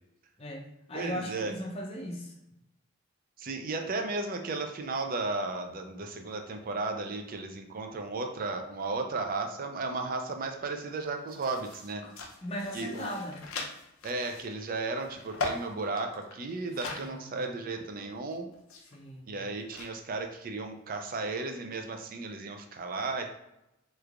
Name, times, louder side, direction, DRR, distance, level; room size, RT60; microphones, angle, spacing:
voice 1, 0.4-2.4 12.0-13.5 16.9-17.5 18.9-19.4, equal, 30° left, 1 dB, 0.5 m, -38 dB
voice 2, 0.9-1.5 3.4-12.0 12.7-13.1 14.0-18.5 19.3-23.4, right 3 dB, 40° right, 4 dB, 0.4 m, -34 dB
sound 1, 10.3-10.4 10.6-17.1 17.4-17.5 18.3-19.9, left 3 dB, 75° left, 0.6 m, -41 dB
3.3 x 3.1 x 2.4 m, 0.88 s
head